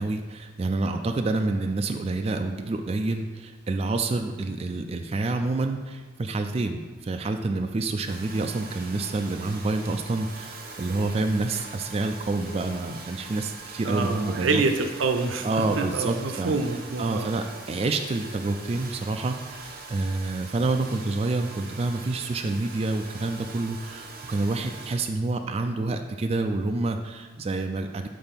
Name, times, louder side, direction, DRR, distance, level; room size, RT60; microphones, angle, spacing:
voice 1, 0.0-14.6 15.4-16.6 17.0-28.1, right 3 dB, 30° right, 5 dB, 0.3 m, -28 dB
Domestic sounds home sounds, 8.1-25.0, right 3 dB, 50° right, 0.9 m, -42 dB
voice 2, 13.8-15.5 15.8-17.3, right 3 dB, 85° right, 7 dB, 0.6 m, -26 dB
5.2 x 4.4 x 5.8 m, 1.4 s
head